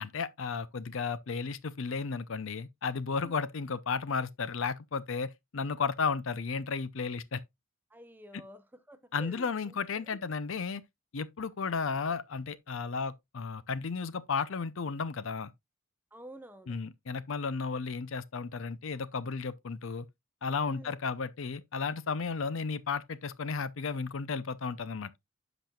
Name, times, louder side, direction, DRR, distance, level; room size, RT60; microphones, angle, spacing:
voice 1, 0.0-7.4 8.3-8.4 9.1-10.8 11.1-15.5 16.7-20.1 20.4-25.1, left 5 dB, 65° left, 0.6 m, -34 dB
voice 2, 7.9-10.2 16.1-16.8 20.7-21.0, equal, 10° right, 0.7 m, -50 dB
10.5 x 6.0 x 2.3 m
head